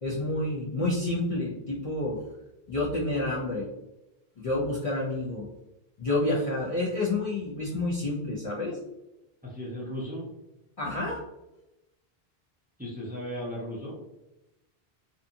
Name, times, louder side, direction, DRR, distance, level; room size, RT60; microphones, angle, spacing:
voice 1, 0.0-2.2 2.7-3.7 4.4-5.5 6.0-8.8 10.8-11.2, left 2 dB, 50° left, -6 dB, 0.4 m, -29 dB
voice 2, 9.4-10.3 12.8-14.0, equal, 10° right, -4 dB, 0.5 m, -36 dB
2.6 x 2.4 x 2.5 m, 0.94 s
omnidirectional pair, 1.0 m